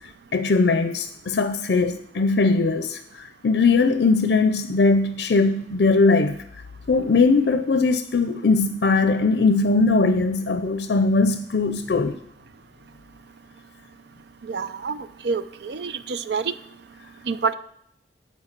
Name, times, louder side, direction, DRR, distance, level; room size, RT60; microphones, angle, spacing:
voice 1, 0.3-6.4 6.9-12.2, left 3 dB, 70° left, 0.5 m, -20 dB
voice 2, 14.5-15.0 15.2-16.5 17.3-17.5, right 5 dB, 75° right, 0.4 m, -27 dB
9.7 x 4.5 x 6.7 m
head